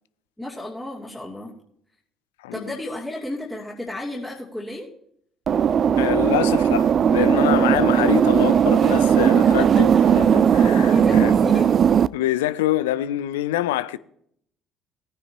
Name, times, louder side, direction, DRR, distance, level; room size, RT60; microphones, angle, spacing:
voice 1, 0.4-1.6 2.5-4.9 9.4-9.8 10.9-11.7, left 1 dB, 10° left, 2.8 m, -33 dB
sound 1, 5.5-12.1, right 8 dB, 50° right, 0.3 m, -17 dB
voice 2, 6.0-11.3 12.1-14.0, left 13 dB, 85° left, 0.4 m, -25 dB
17.0 x 9.6 x 2.9 m
hypercardioid pair, 55°, 0 cm